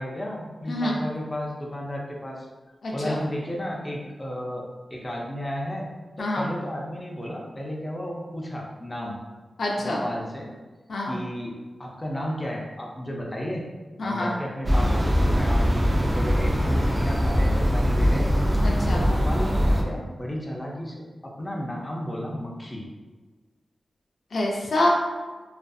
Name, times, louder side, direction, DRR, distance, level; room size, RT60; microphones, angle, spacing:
voice 1, 0.0-2.5 2.9-5.9 6.2-9.2 9.8-10.5 11.0-13.6 14.0-15.6 16.0-18.3 18.9-22.8, equal, 20° left, -2 dB, 0.5 m, -33 dB
voice 2, 2.8-3.2 6.2-6.4 9.6-10.0 10.9-11.2 14.0-14.3 18.6-19.0 24.3-24.9, left 1 dB, 75° left, -2 dB, 0.4 m, -26 dB
sound 1, 14.6-19.8, equal, 35° right, 0.4 m, -22 dB
2.5 x 2.4 x 2.3 m, 1.3 s
cardioid pair, 65°, 0 cm